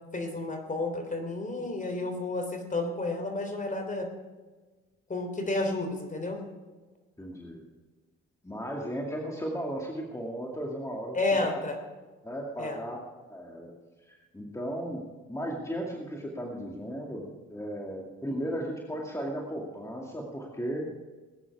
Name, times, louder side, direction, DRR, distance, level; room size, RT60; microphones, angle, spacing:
voice 1, 0.1-4.1 5.1-6.4 11.1-11.8 12.6-12.8, left 2 dB, 25° left, 5 dB, 3.4 m, -31 dB
voice 2, 7.2-7.6 8.4-11.5 12.2-13.0 13.3-13.7 14.1-15.0 15.3-20.9, equal, 10° left, -1 dB, 2.3 m, -35 dB
19.0 x 9.9 x 4.8 m, 1.3 s
cardioid pair, 90°, 30 cm